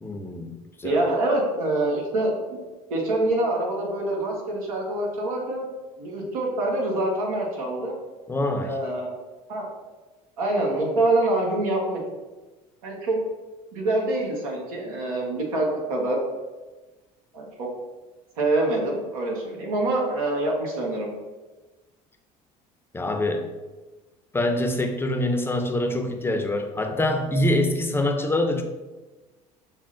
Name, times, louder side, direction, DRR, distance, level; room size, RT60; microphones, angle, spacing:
voice 1, 0.0-0.5 0.8-0.9 8.3-8.8 22.9-23.4 24.3-28.6, left 1 dB, 15° left, 4 dB, 0.6 m, -25 dB
voice 2, 0.8-2.6 2.9-5.7 6.0-8.0 8.6-9.1 9.5-9.7 10.4-12.0 12.8-13.2 13.7-16.2 17.3-17.7 18.4-21.1, right 2 dB, 90° right, -1 dB, 1.1 m, -25 dB
6.0 x 2.0 x 3.7 m, 1.2 s
hypercardioid pair, 75°, 18 cm